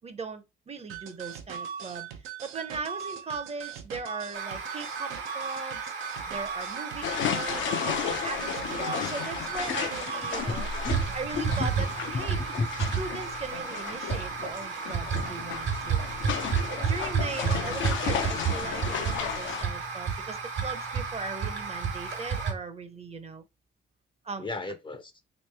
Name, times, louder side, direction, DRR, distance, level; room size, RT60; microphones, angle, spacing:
voice 1, 0.0-2.1 2.4-5.8 6.3-10.7 11.1-12.4 13.0-16.0 16.7-23.4 24.2-24.5, right 4 dB, 30° right, 0.6 m, -38 dB
sound 1, 0.9-10.5, right 7 dB, 90° right, 0.6 m, -39 dB
sound 2, 4.3-22.5, right 5 dB, 75° right, 1.2 m, -32 dB
sound 3, 7.0-19.7, left 9 dB, 75° left, 0.6 m, -34 dB
voice 2, 10.4-11.0 11.3-11.7 12.1-12.7 24.4-25.1, left 3 dB, 25° left, 0.5 m, -34 dB
3.1 x 3.0 x 3.3 m
cardioid pair, 90°, 20 cm